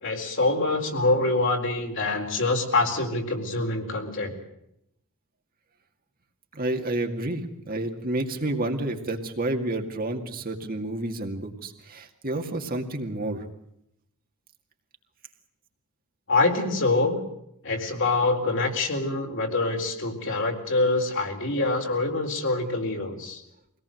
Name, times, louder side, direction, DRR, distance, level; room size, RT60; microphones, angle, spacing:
voice 1, 0.0-4.4 16.3-17.2 17.6-23.4, left 2 dB, 60° left, 2 dB, 4.1 m, -25 dB
voice 2, 6.5-13.4, right 1 dB, 45° right, 4 dB, 2.3 m, -30 dB
24.0 x 18.0 x 7.8 m, 0.78 s
head